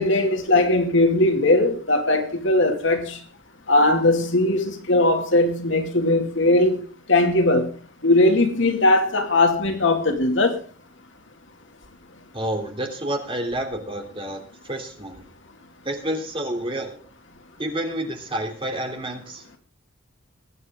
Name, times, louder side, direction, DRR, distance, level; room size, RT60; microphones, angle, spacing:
voice 1, 0.0-3.2 3.7-6.8 7.1-7.7 8.0-10.6, left 2 dB, 70° left, 2.4 m, -19 dB
voice 2, 12.3-14.4 14.6-15.2 15.8-17.0 17.6-19.4, right 1 dB, 25° right, 3.3 m, -29 dB
21.5 x 9.5 x 3.7 m
head